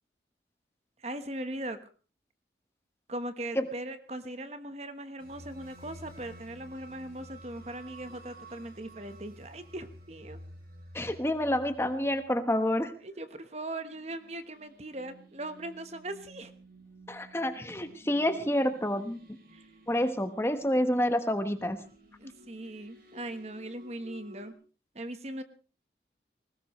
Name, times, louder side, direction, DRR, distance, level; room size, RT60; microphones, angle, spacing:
voice 1, 1.0-1.8 3.1-10.4 13.0-16.5 19.5-19.7 22.2-24.5 24.9-25.4, right 1 dB, 35° right, 10 dB, 1.2 m, -39 dB
sound 1, 5.2-24.5, equal, 55° right, 4.0 m, -53 dB
voice 2, 10.9-12.9 17.1-19.2 19.9-21.8, left 1 dB, 15° left, 8 dB, 1.2 m, -28 dB
20.5 x 19.0 x 3.2 m, 0.37 s
head